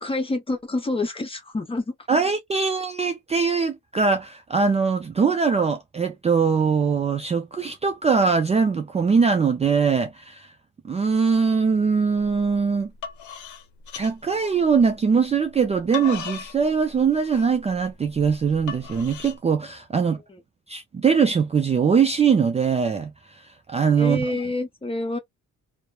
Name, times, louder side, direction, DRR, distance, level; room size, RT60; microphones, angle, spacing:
voice 1, 0.0-1.9 20.3-20.4 24.0-25.2, left 2 dB, 20° left, 0.9 m, -27 dB
voice 2, 2.1-10.5 10.8-12.9 14.0-20.2 20.7-24.3, right 5 dB, 20° right, 0.4 m, -22 dB
sound 1, 12.2-12.5 12.8-14.9 15.5-19.4, left 7 dB, 75° left, 0.7 m, -37 dB
3.0 x 2.0 x 2.3 m
cardioid pair, 90°, 30 cm